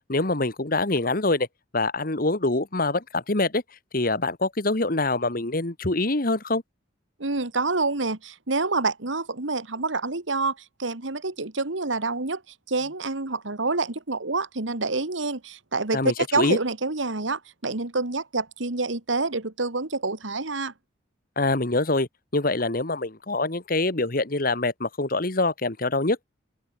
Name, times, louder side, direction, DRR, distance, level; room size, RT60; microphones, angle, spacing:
voice 1, 0.1-1.5 1.7-3.6 3.9-6.6 15.9-16.6 21.4-26.2, left 2 dB, 50° left, 1.7 m, -25 dB
voice 2, 7.2-12.4 12.7-20.7, right 3 dB, 80° right, 2.0 m, -27 dB
open air
head